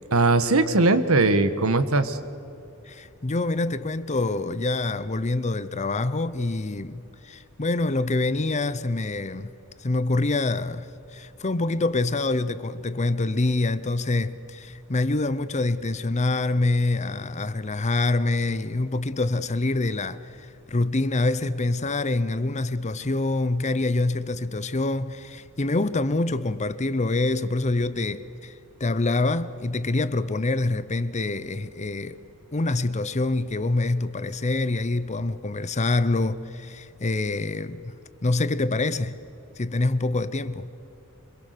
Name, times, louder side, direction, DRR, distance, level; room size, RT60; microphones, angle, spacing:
voice 1, 0.1-2.2, right 2 dB, 70° right, 1.4 m, -20 dB
voice 2, 2.9-9.5 9.8-28.5 28.8-32.2 32.5-37.9 38.2-39.2 39.6-40.7, left 2 dB, 30° left, 0.7 m, -26 dB
26.0 x 22.0 x 6.8 m
head